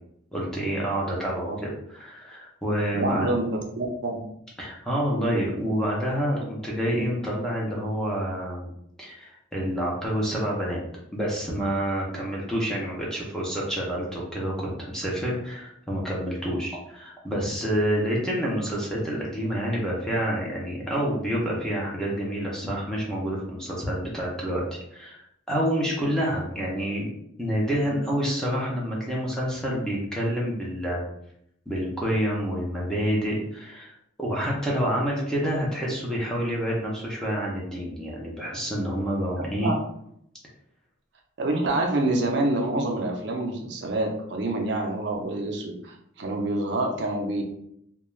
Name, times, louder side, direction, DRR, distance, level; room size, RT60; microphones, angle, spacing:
voice 1, 0.3-3.3 4.6-8.7 9.0-10.8 11.1-25.2 25.5-27.1 27.4-31.0 31.7-33.9 34.2-39.7, equal, 5° left, -5 dB, 0.5 m, -28 dB
voice 2, 2.9-4.2 39.5-39.7 41.4-47.4, right 2 dB, 60° right, 2 dB, 0.4 m, -27 dB
2.3 x 2.2 x 3.1 m, 0.74 s
head